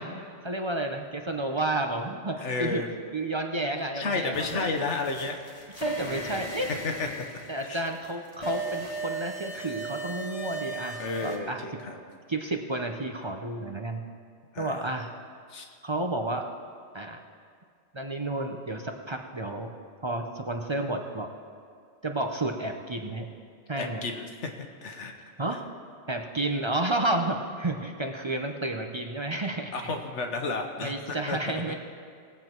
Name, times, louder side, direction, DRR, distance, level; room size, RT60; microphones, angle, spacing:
voice 1, 0.0-2.8 3.1-4.8 5.8-6.7 7.5-11.6 12.3-14.0 14.6-15.1 15.8-16.5 16.9-17.2 17.9-19.7 20.0-21.3 22.0-23.3 23.7-24.1 25.4-25.6 26.1-29.7 30.8-31.7, right 2 dB, 30° right, 4 dB, 0.6 m, -31 dB
voice 2, 2.4-2.9 3.9-5.4 6.1-6.4 6.8-7.1 7.6-7.8 11.0-12.0 14.5-14.8 15.5-15.7 23.8-24.5 24.8-25.6 29.7-31.4 31.7-31.8, left 3 dB, 75° left, 4 dB, 1.4 m, -32 dB
sound 1, 4.3-11.4, right 3 dB, 25° left, 1.5 m, -37 dB
19.5 x 7.8 x 4.5 m, 2.2 s
omnidirectional pair, 1.2 m